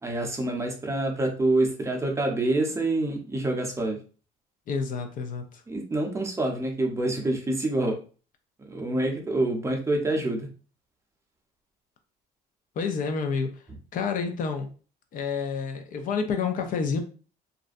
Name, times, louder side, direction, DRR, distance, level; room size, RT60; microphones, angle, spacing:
voice 1, 0.0-4.0 5.7-8.0 8.7-10.5, right 2 dB, 15° right, 2 dB, 0.6 m, -26 dB
voice 2, 4.7-5.6 12.8-13.6 13.9-14.7 15.1-17.0, left 5 dB, 55° left, 6 dB, 0.4 m, -29 dB
2.5 x 2.1 x 2.4 m, 0.37 s
cardioid pair, 110°, 17 cm